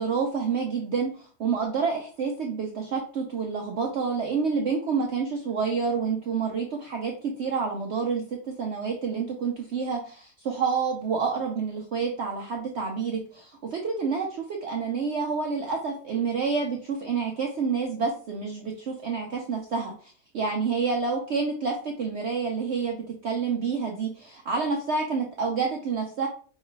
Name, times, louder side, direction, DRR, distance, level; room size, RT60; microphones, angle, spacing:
voice 1, 0.0-23.0 23.2-26.3, right 5 dB, 85° right, 1 dB, 0.6 m, -28 dB
5.3 x 2.4 x 3.0 m, 0.42 s
omnidirectional pair, 1.9 m